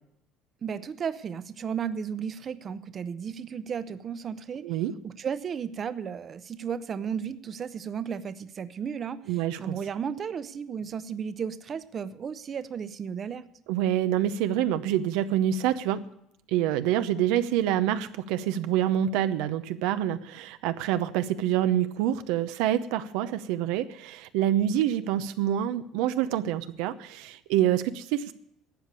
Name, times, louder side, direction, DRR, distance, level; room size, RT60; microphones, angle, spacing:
voice 1, 0.6-4.7 5.0-9.2 9.6-13.5, right 7 dB, 35° right, 14 dB, 0.7 m, -34 dB
voice 2, 4.6-4.9 9.3-9.8 13.7-16.0 16.5-28.3, right 11 dB, 80° right, 11 dB, 0.7 m, -26 dB
12.5 x 8.2 x 8.2 m, 0.79 s
cardioid pair, 110°, 0 cm